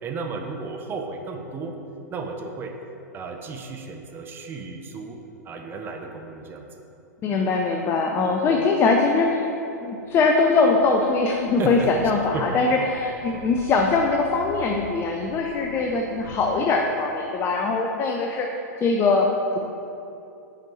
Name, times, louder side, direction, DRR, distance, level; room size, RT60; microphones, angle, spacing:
voice 1, 0.0-1.8 2.1-2.7 3.1-5.2 5.4-6.7 8.5-8.7 11.6-11.9 12.3-12.6, right 4 dB, 25° right, 3 dB, 0.6 m, -33 dB
voice 2, 7.2-9.5 9.8-19.3, left 3 dB, 25° left, 2 dB, 0.5 m, -22 dB
sound 1, 10.0-16.5, left 2 dB, 75° left, 1.1 m, -44 dB
5.7 x 5.2 x 4.4 m, 2.8 s
figure-of-eight pair, 100°, 9 cm